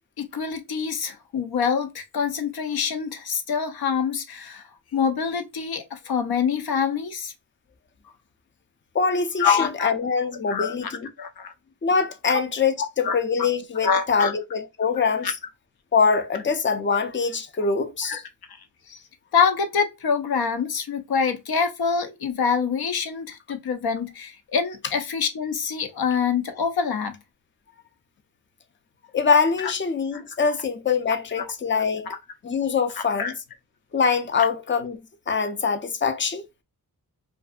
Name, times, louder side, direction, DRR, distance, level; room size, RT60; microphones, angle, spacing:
voice 1, 0.2-4.6 4.9-7.3 9.4-9.9 10.5-10.9 11.2-11.5 13.0-13.1 13.8-14.3 15.2-15.3 18.0-18.2 18.9-19.0 19.3-27.1 29.6-29.7 30.1-30.2 31.4-31.5 32.1-32.2 33.0-33.3, left 6 dB, 85° left, 0.6 m, -25 dB
voice 2, 8.9-11.1 11.8-15.3 15.9-18.2 29.1-32.1 32.4-33.3 33.9-35.0 35.3-36.4, left 5 dB, 35° left, 0.4 m, -23 dB
2.5 x 2.3 x 2.3 m
wide cardioid pair, 120°, 36 cm